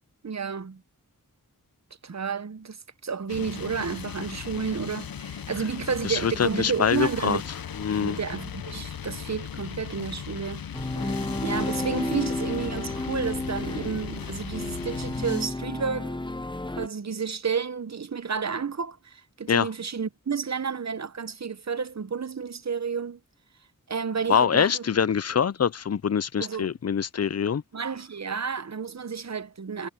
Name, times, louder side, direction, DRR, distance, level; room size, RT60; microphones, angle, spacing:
voice 1, 0.2-0.8 2.0-7.4 8.0-10.6 10.9-16.2 16.8-23.2 23.9-24.8 26.4-26.7 27.7-29.9, right 6 dB, 50° right, 0.8 m, -31 dB
sound 1, 3.3-15.5, left 8 dB, 90° left, 0.7 m, -38 dB
voice 2, 6.0-7.4 7.8-8.2 19.5-19.7 24.3-27.6, left 7 dB, 50° left, 0.5 m, -24 dB
sound 2, 10.7-16.9, left 2 dB, 15° left, 0.8 m, -32 dB
wide cardioid pair, 45°, 34 cm